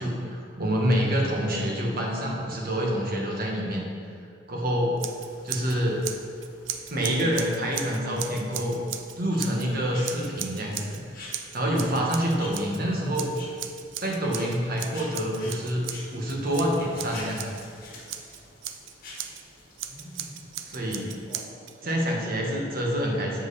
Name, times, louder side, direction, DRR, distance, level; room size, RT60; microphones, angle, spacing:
voice 1, 0.0-3.9 4.5-5.0 5.4-6.1 6.9-8.8 9.2-11.2 11.5-13.3 14.0-15.8 16.1-17.5 20.7-21.1 21.8-23.5, equal, 50° right, -2 dB, 1.3 m, -27 dB
Scissors, 5.0-5.8 6.0-9.7 10.0-11.0 11.3-12.8 13.1-17.6 18.1-19.4 19.8-21.7, right 10 dB, 85° right, 0.5 m, -37 dB
sound 1, 5.1-21.3, left 2 dB, 50° left, 1.6 m, -48 dB
voice 2, 19.9-20.4 21.3-23.0, equal, 35° left, -2 dB, 1.0 m, -46 dB
7.3 x 5.3 x 4.1 m, 2.5 s
head